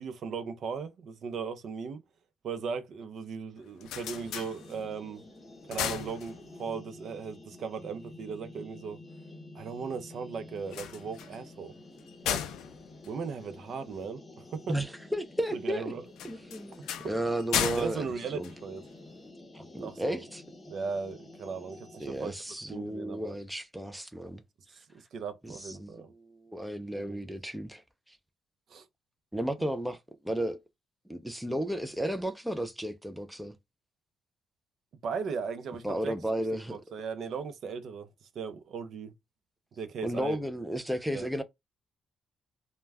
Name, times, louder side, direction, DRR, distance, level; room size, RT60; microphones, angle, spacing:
voice 1, 0.0-2.0 2.4-5.2 5.7-9.0 9.5-11.7 12.2-12.5 13.1-14.8 15.5-16.0 17.0-17.2 17.8-18.8 19.8-20.2 20.7-22.3 22.7-23.4 25.1-26.1 26.9-27.2 28.7-28.8 35.0-36.2 36.5-38.1 38.3-39.1 39.8-40.4 41.1-41.3, right 5 dB, 65° right, 0.5 m, -37 dB
sound 1, 3.6-5.1 5.5-6.8 10.6-14.0 16.1-19.2, left 10 dB, 90° left, 0.3 m, -36 dB
sound 2, 4.1-22.4, left 2 dB, 25° left, 0.8 m, -50 dB
voice 2, 14.7-15.9 16.2-18.1 18.3-18.5 19.5-20.4 22.0-24.4 25.4-28.2 29.3-30.6 31.1-33.6 35.8-36.8 40.0-41.4, right 1 dB, 5° right, 0.4 m, -33 dB
2.2 x 2.1 x 3.3 m
cardioid pair, 90°, 0 cm